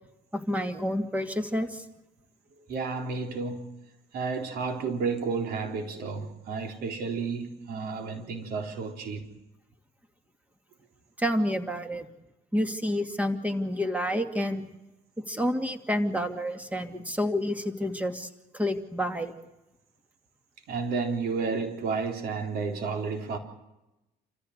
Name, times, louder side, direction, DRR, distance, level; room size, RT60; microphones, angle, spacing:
voice 1, 0.3-1.8 11.2-12.1 12.5-14.6 15.3-19.3, equal, 10° right, 2.5 m, -29 dB
voice 2, 2.7-3.7 4.1-9.3 20.7-23.4, right 4 dB, 70° right, 3.9 m, -31 dB
27.5 x 15.0 x 8.1 m
cardioid pair, 110°, 17 cm